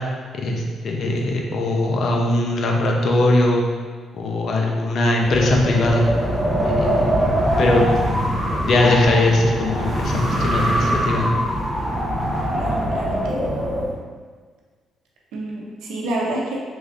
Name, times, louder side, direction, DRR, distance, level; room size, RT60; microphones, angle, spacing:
voice 1, 0.4-3.6 4.1-6.0 6.6-7.1 7.6-8.0 8.7-11.4, left 1 dB, 60° left, 0 dB, 0.4 m, -20 dB
Wind, 5.2-13.9, equal, 5° right, 0.6 m, -22 dB
voice 2, 12.5-13.5 15.3-16.5, right 1 dB, 85° right, -2 dB, 0.5 m, -28 dB
3.1 x 2.6 x 2.3 m, 1.5 s
cardioid pair, 90°, 0 cm